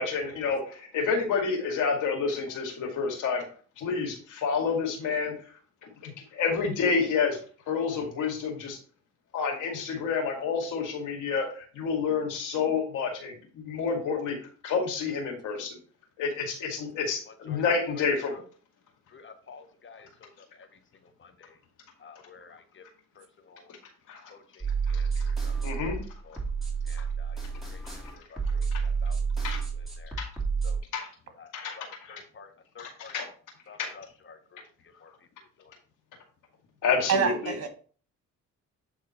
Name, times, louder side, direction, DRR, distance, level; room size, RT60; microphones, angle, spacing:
voice 1, 0.0-3.5 3.8-5.3 5.8-7.4 7.7-8.8 9.3-14.4 14.6-15.8 16.2-18.3 24.1-24.3 24.9-25.2 25.6-26.0 28.7-28.8 29.4-29.6 30.2-30.3 30.9-31.1 31.5-32.2 32.8-33.3 33.8-33.9 36.8-37.5, left 5 dB, 85° left, 2 dB, 2.1 m, -29 dB
voice 2, 17.3-17.6 17.9-18.0 18.3-18.4 19.1-21.6 22.0-22.8 23.1-23.7 24.3-25.5 26.2-26.4 26.8-29.2 29.7-30.2 30.6-30.8 31.4-33.1 33.7-35.1 35.6-35.7, left 5 dB, 40° left, 8 dB, 1.1 m, -51 dB
sound 1, 24.6-30.8, right 5 dB, ahead, 3.0 m, -30 dB
voice 3, 37.1-37.7, right 6 dB, 55° right, 6 dB, 1.7 m, -26 dB
8.6 x 3.7 x 4.3 m, 0.41 s
cardioid pair, 90°, 30 cm